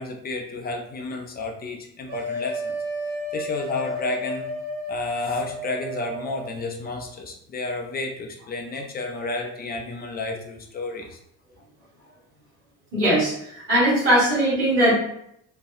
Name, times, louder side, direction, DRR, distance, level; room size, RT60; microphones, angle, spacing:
voice 1, 0.0-2.7 3.3-4.4 4.9-11.2, left 3 dB, 20° left, 2 dB, 0.4 m, -31 dB
sound 1, 2.1-6.5, equal, 60° right, 0.7 m, -32 dB
voice 2, 12.9-14.9, right 1 dB, 75° right, -11 dB, 1.4 m, -20 dB
2.6 x 2.3 x 2.5 m, 0.73 s
figure-of-eight pair, 45°, 46 cm